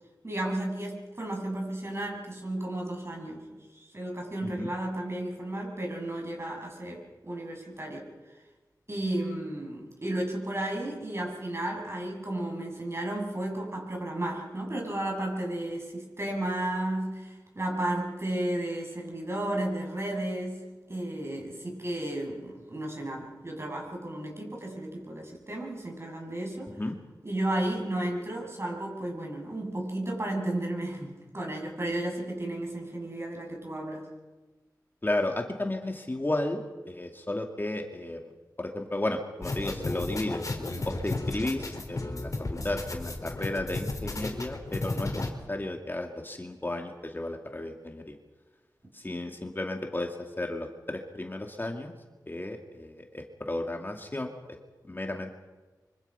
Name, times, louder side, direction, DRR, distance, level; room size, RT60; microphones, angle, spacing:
voice 1, 0.2-8.1 8.9-26.7 27.2-34.1, right 1 dB, 40° right, 1 dB, 7.4 m, -33 dB
voice 2, 35.0-38.2 38.6-40.4 40.9-48.2 48.9-51.9 52.3-54.3 54.9-55.3, left 1 dB, 30° left, 3 dB, 2.4 m, -33 dB
sound 1, 39.4-45.3, left 2 dB, 50° left, 3.7 m, -34 dB
25.0 x 25.0 x 5.7 m, 1.2 s
cardioid pair, 55°, 7 cm